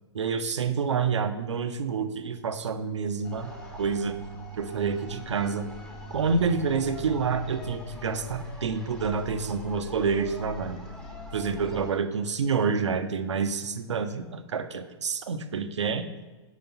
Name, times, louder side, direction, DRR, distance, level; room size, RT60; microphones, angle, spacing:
voice 1, 0.1-4.2 4.6-5.7 6.1-10.8 11.3-16.1, right 5 dB, 85° right, 10 dB, 0.5 m, -28 dB
sound 1, 3.2-11.9, left 2 dB, 5° left, 0.9 m, -41 dB
5.0 x 4.0 x 5.6 m, 1.3 s
hypercardioid pair, 115°, 15 cm